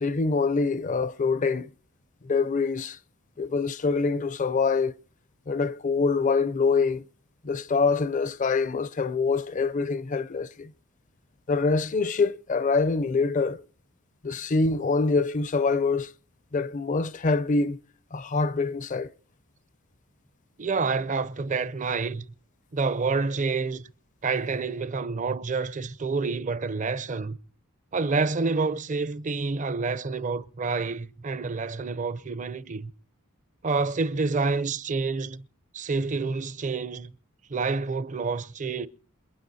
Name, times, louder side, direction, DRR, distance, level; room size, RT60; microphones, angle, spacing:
voice 1, 0.0-1.7 2.2-3.0 3.4-4.9 5.5-7.0 7.4-10.7 11.5-13.6 14.2-16.1 16.5-17.8 18.1-19.1, left 4 dB, 35° left, 0.5 m, -25 dB
voice 2, 20.6-22.2 22.7-23.8 24.2-27.4 27.9-32.9 33.6-35.4 35.7-37.1 37.5-38.9, right 4 dB, 35° right, 0.6 m, -28 dB
28.0 x 9.7 x 2.7 m
head